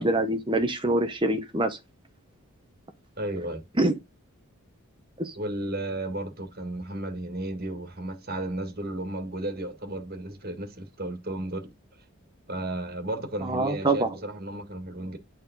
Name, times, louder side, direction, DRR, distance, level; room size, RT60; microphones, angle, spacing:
voice 1, 0.0-1.8 3.8-3.9 5.2-5.3 13.4-14.1, right 2 dB, 20° right, 0.8 m, -25 dB
voice 2, 3.2-3.6 5.4-11.7 12.5-15.2, right 1 dB, 45° right, 1.8 m, -33 dB
10.0 x 4.6 x 4.0 m
head